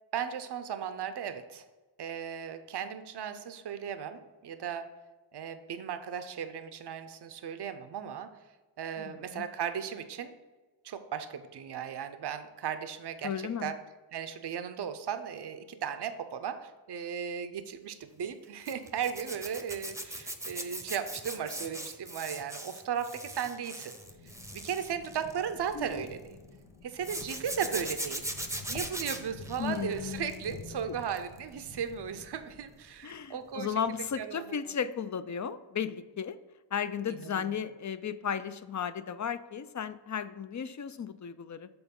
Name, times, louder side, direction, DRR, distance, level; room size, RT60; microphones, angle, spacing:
voice 1, 0.1-1.6 2.0-4.9 5.3-8.3 8.8-10.3 10.8-13.3 13.6-13.8 14.1-23.9 24.5-26.4 26.8-28.2 28.7-33.7 34.2-34.4 37.2-37.5, right 8 dB, 60° right, 9 dB, 0.6 m, -36 dB
voice 2, 9.0-9.4 13.2-13.7 25.7-26.1 29.6-30.6 30.9-31.0 33.0-36.4 36.7-41.7, left 7 dB, 40° left, 13 dB, 0.4 m, -35 dB
Zipper (clothing), 18.6-26.1 27.0-30.7 31.0-31.4 33.7-33.9 34.1-34.2, right 1 dB, 5° right, 0.7 m, -40 dB
sound 1, 23.8-33.1, left 3 dB, 85° left, 1.0 m, -49 dB
7.0 x 3.9 x 5.3 m, 1.2 s
wide cardioid pair, 70°, 46 cm